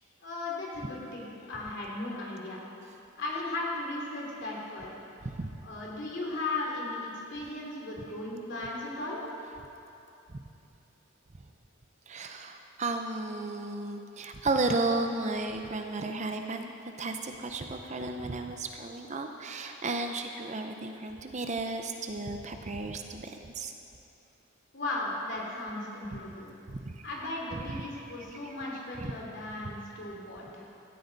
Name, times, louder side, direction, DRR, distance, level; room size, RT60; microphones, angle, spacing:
voice 1, 0.2-2.6 3.2-5.0 5.6-9.2 24.7-26.5 27.0-30.7, left 2 dB, 50° left, -3 dB, 2.9 m, -36 dB
voice 2, 12.1-23.7 26.7-27.0 27.5-27.8 28.3-28.5 29.0-29.1, right 2 dB, 30° right, 5 dB, 0.6 m, -34 dB
16.0 x 13.0 x 4.0 m, 2.9 s
head